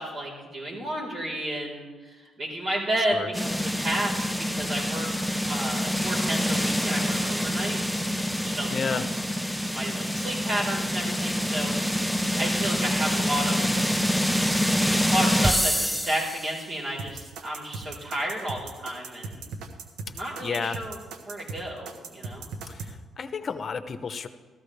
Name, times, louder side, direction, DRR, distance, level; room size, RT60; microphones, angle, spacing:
voice 1, 0.0-5.1 5.5-8.1 8.4-9.0 9.7-14.0 15.1-19.5 20.1-21.0 21.3-22.5, right 1 dB, 50° right, -2 dB, 4.3 m, -32 dB
sound 1, 3.3-16.6, equal, ahead, 0.6 m, -26 dB
voice 2, 8.7-9.0 20.4-20.8 22.7-24.3, left 5 dB, 45° left, 11 dB, 0.8 m, -31 dB
sound 2, 17.0-22.9, right 4 dB, 85° right, 1.1 m, -38 dB
14.0 x 14.0 x 3.4 m, 1.3 s
cardioid pair, 90°, 0 cm